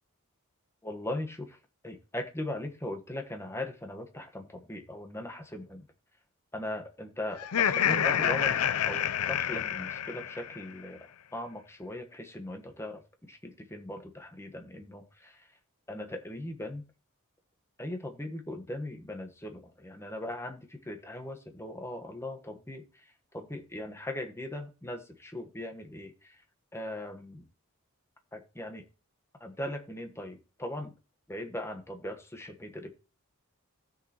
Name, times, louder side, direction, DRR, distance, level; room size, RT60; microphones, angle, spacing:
voice 1, 0.8-1.6 1.8-5.9 6.5-15.5 15.9-16.8 17.8-26.4 26.7-27.5 28.3-28.8 29.4-30.9 31.3-32.9, left 1 dB, 10° left, 5 dB, 1.2 m, -39 dB
Laughter, 7.4-10.6, left 9 dB, 75° left, 0.5 m, -28 dB
17.5 x 6.4 x 2.9 m, 0.33 s
head